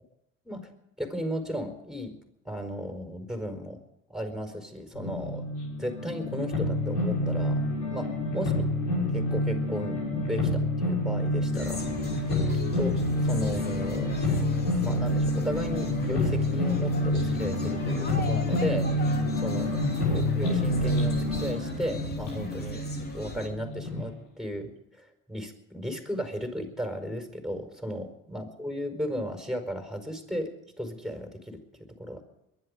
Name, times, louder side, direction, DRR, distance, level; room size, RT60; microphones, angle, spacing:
voice 1, 1.0-2.2 2.4-3.8 4.1-5.5 5.8-8.6 9.1-11.8 12.8-13.0 13.2-14.2 14.8-22.8 23.1-30.5 30.8-32.2, equal, ahead, 6 dB, 4.7 m, -35 dB
sound 1, 4.9-24.0, left 1 dB, 85° left, 6.8 m, -28 dB
sound 2, 11.5-23.5, left 2 dB, 25° left, 3.5 m, -38 dB
22.5 x 11.5 x 5.1 m, 0.89 s
supercardioid pair, 90°, 37 cm